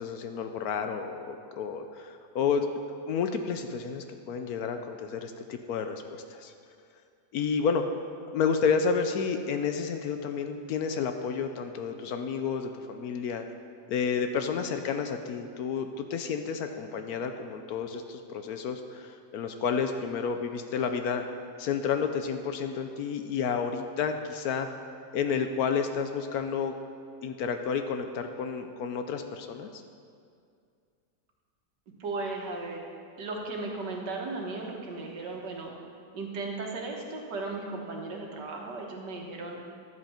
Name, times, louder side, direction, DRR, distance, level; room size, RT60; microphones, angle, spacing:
voice 1, 0.0-2.8 3.1-6.5 7.3-7.8 8.3-13.4 13.9-21.2 21.6-24.7 25.1-26.7 27.2-29.8, left 6 dB, 70° left, 7 dB, 1.0 m, -30 dB
voice 2, 32.0-32.8 33.2-35.7 36.1-39.6, right 3 dB, 90° right, 0 dB, 1.8 m, -36 dB
11.5 x 7.9 x 4.3 m, 2.3 s
omnidirectional pair, 1.8 m